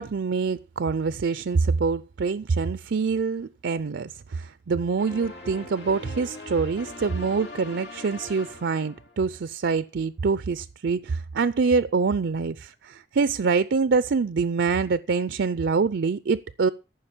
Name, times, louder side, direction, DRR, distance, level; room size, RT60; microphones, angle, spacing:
voice 1, 0.0-16.7, right 4 dB, 90° right, 0.5 m, -25 dB
sound 1, 5.0-9.5, left 2 dB, 75° left, 4.6 m, -41 dB
14.0 x 5.8 x 7.1 m
head